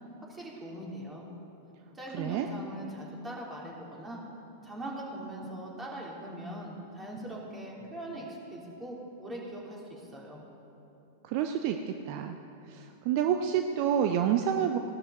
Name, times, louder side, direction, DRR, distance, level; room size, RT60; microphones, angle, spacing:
voice 1, 0.3-1.2 1.9-4.2 4.6-10.4, right 1 dB, 15° right, -4 dB, 3.4 m, -41 dB
voice 2, 2.1-2.5 11.2-12.4 12.7-14.8, right 9 dB, 50° right, 6 dB, 0.6 m, -28 dB
16.5 x 12.5 x 4.1 m, 2.9 s
figure-of-eight pair, 95°, 0 cm